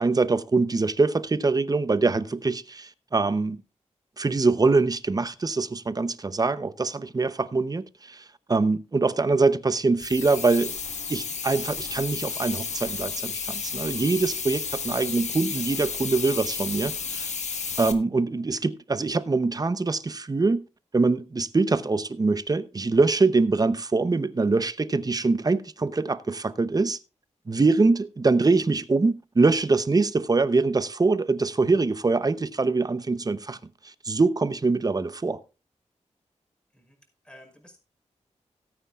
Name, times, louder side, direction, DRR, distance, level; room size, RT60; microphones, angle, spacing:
voice 1, 0.0-3.6 4.2-8.2 8.5-10.8 11.1-17.3 17.8-20.6 20.9-27.0 27.5-33.6 33.8-35.4, right 3 dB, 30° right, 0.7 m, -24 dB
sound 1, 10.0-17.9, left 5 dB, 70° left, 1.3 m, -32 dB
voice 2, 15.6-16.1 36.7-37.0 37.2-37.8, left 1 dB, 5° left, 5.4 m, -52 dB
17.5 x 9.2 x 2.4 m
wide cardioid pair, 90°, 12 cm